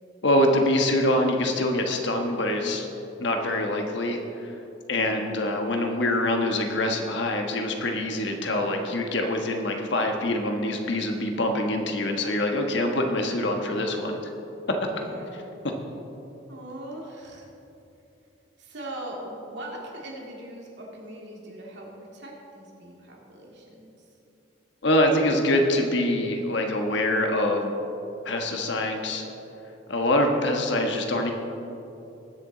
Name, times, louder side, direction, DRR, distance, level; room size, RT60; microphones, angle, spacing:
voice 1, 0.2-2.9 3.2-4.6 4.9-14.2 24.8-27.7 28.2-29.2 29.9-31.3, left 1 dB, 65° left, 3 dB, 1.3 m, -25 dB
voice 2, 4.9-5.3 14.9-15.4 16.5-17.5 18.6-24.1, right 1 dB, 65° right, -2 dB, 2.3 m, -40 dB
19.5 x 7.1 x 3.9 m, 2.9 s
head